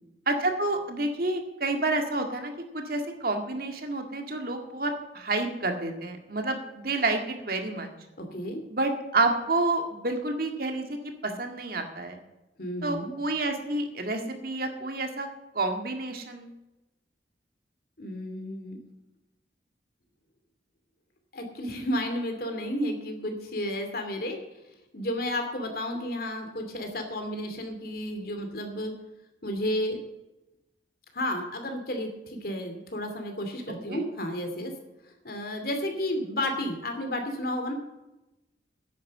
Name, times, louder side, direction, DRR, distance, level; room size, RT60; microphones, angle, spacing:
voice 1, 0.3-7.9 8.7-12.2 12.8-15.3 15.5-16.5 33.9-34.0, right 2 dB, 55° right, 4 dB, 1.9 m, -29 dB
voice 2, 8.2-8.6 12.6-13.1 18.0-18.8 21.3-24.4 24.9-28.9 29.4-30.0 31.1-34.7 35.2-37.7, left 1 dB, 55° left, 5 dB, 2.6 m, -32 dB
10.5 x 9.5 x 7.5 m, 0.96 s
head